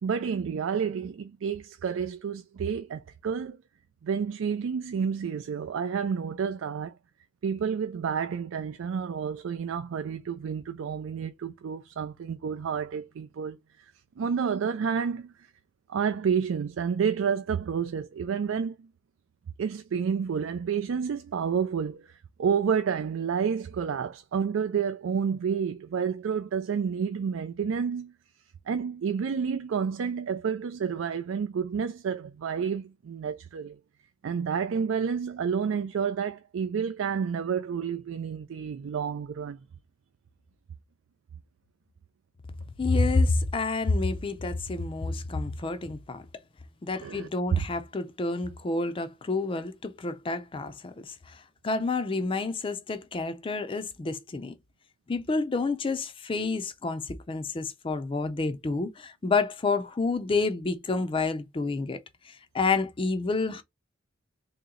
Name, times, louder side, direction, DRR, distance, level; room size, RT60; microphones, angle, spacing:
voice 1, 0.0-3.6 4.0-7.0 7.4-13.9 14.2-15.5 15.9-18.9 19.6-28.1 28.7-33.8 34.2-39.6 47.0-47.7, right 6 dB, 90° right, 0.4 m, -30 dB
voice 2, 42.8-46.2 46.8-54.5 55.1-62.0 62.3-63.6, left 3 dB, 25° left, 0.4 m, -29 dB
3.0 x 2.9 x 3.7 m
head